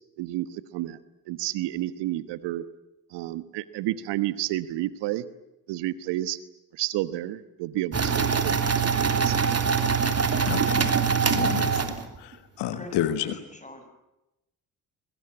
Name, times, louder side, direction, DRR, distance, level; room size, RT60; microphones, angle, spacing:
voice 1, 0.2-1.0 1.3-2.6 3.1-5.2 5.7-6.4 6.7-9.5, right 15 dB, 70° right, 14 dB, 1.3 m, -31 dB
sound 1, 7.9-12.3, right 6 dB, 35° right, 3.1 m, -24 dB
voice 2, 10.5-10.9 11.3-11.9 12.2-13.4, left 12 dB, 65° left, 11 dB, 1.6 m, -30 dB
voice 3, 12.7-13.8, left 1 dB, 15° left, 7 dB, 7.5 m, -43 dB
23.5 x 22.5 x 9.6 m, 0.93 s
hypercardioid pair, 50°, 44 cm